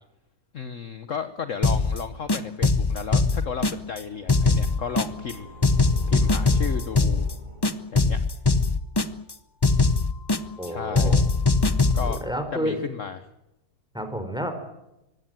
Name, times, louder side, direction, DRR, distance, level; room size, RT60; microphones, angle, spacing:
voice 1, 0.5-5.5 6.1-7.3 7.9-8.2 10.6-11.2 11.9-12.2 12.5-13.3, left 7 dB, 50° left, 10 dB, 1.3 m, -33 dB
sound 1, 1.6-2.0 2.3-4.0 4.3-5.3 5.6-7.3 7.6-9.3 9.6-10.7 10.9-12.2, left 3 dB, 30° left, 0.5 m, -21 dB
sound 2, 3.7-8.4, left 1 dB, 50° right, 6.5 m, -43 dB
voice 2, 10.6-11.2 12.0-12.8 13.9-14.5, equal, ahead, 7 dB, 4.2 m, -30 dB
25.0 x 17.0 x 9.1 m, 0.91 s
omnidirectional pair, 1.8 m